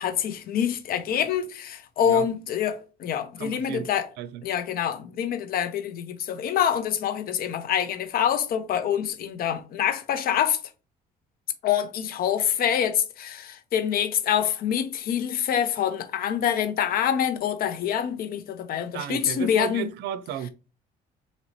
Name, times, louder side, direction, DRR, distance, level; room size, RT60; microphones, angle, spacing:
voice 1, 0.0-4.1 4.4-10.6 11.6-19.9, left 9 dB, 60° left, 0.7 m, -26 dB
voice 2, 3.4-3.9 4.2-4.4 18.9-20.5, right 10 dB, 80° right, 0.5 m, -34 dB
4.1 x 2.9 x 2.9 m
cardioid pair, 110°, 17 cm